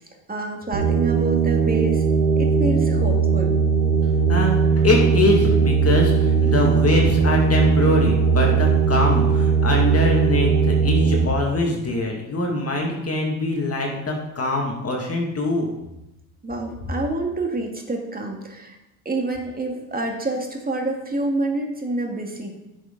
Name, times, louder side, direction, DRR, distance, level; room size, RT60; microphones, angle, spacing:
voice 1, 0.3-2.0 2.4-3.6 16.4-18.8 19.1-22.5, right 2 dB, 20° right, 1 dB, 2.1 m, -27 dB
sound 1, 0.7-11.3, right 5 dB, 75° right, 1.7 m, -19 dB
voice 2, 4.3-15.7, left 2 dB, 35° left, 0 dB, 2.2 m, -23 dB
10.5 x 6.4 x 4.0 m, 0.95 s
supercardioid pair, 75°, 43 cm